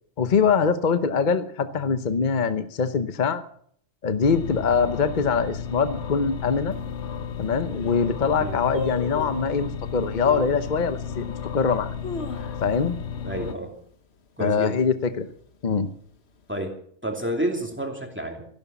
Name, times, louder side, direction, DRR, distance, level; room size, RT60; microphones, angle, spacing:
voice 1, 0.2-3.4 4.0-6.7 7.4-11.3 11.5-11.9 12.6-12.9 14.4-15.3 15.6-15.9, left 5 dB, 45° left, 11 dB, 1.0 m, -23 dB
sound 1, 4.2-13.5, left 7 dB, 80° left, 1.2 m, -33 dB
sound 2, 6.7-6.8 7.4-7.5 7.7-8.1 8.7-9.5 10.2-10.6 11.2-11.3 11.8-12.9 13.2-13.3 13.6-14.0 14.4-14.8 15.4-16.2 16.4-16.5, left 3 dB, 65° left, 1.5 m, -35 dB
voice 2, 13.2-13.7 14.4-14.8 16.5-16.8 17.0-18.4, right 1 dB, 10° right, 2 dB, 2.7 m, -29 dB
15.0 x 12.0 x 7.1 m, 0.62 s
omnidirectional pair, 1.2 m